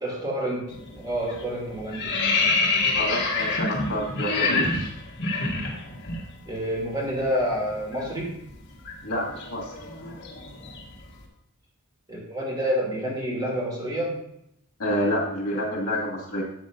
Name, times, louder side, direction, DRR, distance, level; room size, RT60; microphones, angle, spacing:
voice 1, 0.0-2.4 6.4-8.4 12.1-14.2, equal, 20° right, -4 dB, 2.9 m, -28 dB
sound 1, 0.7-1.0 1.3-6.2 6.5-6.7 7.0-11.1, left 3 dB, 55° left, 1.8 m, -27 dB
voice 2, 2.9-4.9 9.0-9.7 14.8-16.4, equal, 75° left, -3 dB, 2.4 m, -28 dB
12.0 x 7.8 x 2.7 m, 0.76 s
head